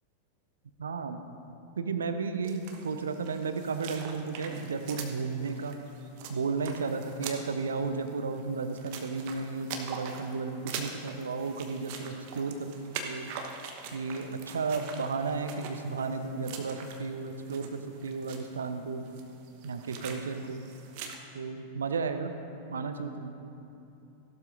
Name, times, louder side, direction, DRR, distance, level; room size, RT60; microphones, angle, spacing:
voice 1, 0.8-1.2 1.8-5.7 6.3-12.8 13.0-13.3 13.9-19.0 19.6-20.6 21.3-22.3 22.7-23.3, right 4 dB, 70° right, 8 dB, 0.7 m, -33 dB
sound 1, 2.4-21.2, right 6 dB, 45° right, 1.1 m, -44 dB
16.0 x 12.0 x 2.6 m, 2.8 s
figure-of-eight pair, 90°, 0 cm